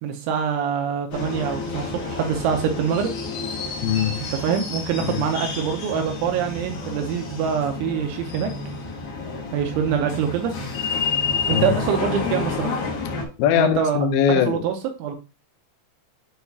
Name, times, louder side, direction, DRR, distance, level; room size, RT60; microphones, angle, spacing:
voice 1, 0.0-3.1 4.3-8.5 9.5-10.5 11.5-12.8 13.5-15.2, right 7 dB, 85° right, 4 dB, 3.1 m, -25 dB
sound 1, 1.1-13.2, left 4 dB, 60° left, 2.2 m, -30 dB
voice 2, 3.8-4.2 5.0-5.3 11.5-11.8 13.4-14.7, left 9 dB, 80° left, 8 dB, 2.3 m, -21 dB
9.1 x 4.0 x 2.7 m, 0.30 s
omnidirectional pair, 5.4 m